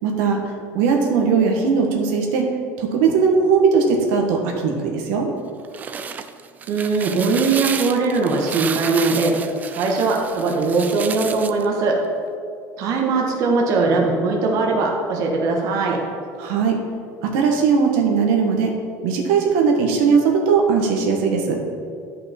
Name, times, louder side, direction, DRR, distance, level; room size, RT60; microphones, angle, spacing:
voice 1, 0.0-2.5 2.8-5.3 16.4-16.8 17.2-18.7 19.0-21.6, right 5 dB, 90° right, 1 dB, 1.4 m, -19 dB
sound 1, 5.5-11.7, right 6 dB, 20° right, 0.3 m, -31 dB
voice 2, 6.7-9.3 9.8-11.9 12.8-16.0, right 3 dB, 50° right, 0 dB, 1.3 m, -20 dB
11.5 x 5.4 x 4.4 m, 2.3 s
cardioid pair, 165°, 7 cm